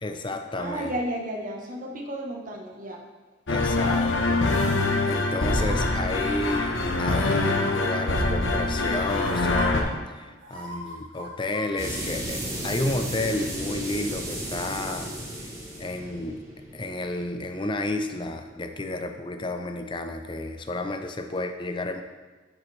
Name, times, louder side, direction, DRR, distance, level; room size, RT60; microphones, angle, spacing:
voice 1, 0.0-1.0 3.5-4.5 5.0-15.1 15.8-16.4 16.7-22.0, left 2 dB, 25° left, 6 dB, 0.5 m, -31 dB
voice 2, 0.6-3.0, right 1 dB, 40° right, 1 dB, 1.0 m, -33 dB
sound 1, 3.5-9.8, left 2 dB, 65° left, 0.9 m, -24 dB
sound 2, 5.4-5.8 6.3-6.6 7.5-7.9 8.8-8.9 9.2-9.7 10.4-11.7 12.0-12.1, right 1 dB, 70° right, 2.0 m, -38 dB
sound 3, 11.8-18.3, right 1 dB, 15° right, 1.2 m, -35 dB
7.9 x 7.2 x 3.2 m, 1.3 s
head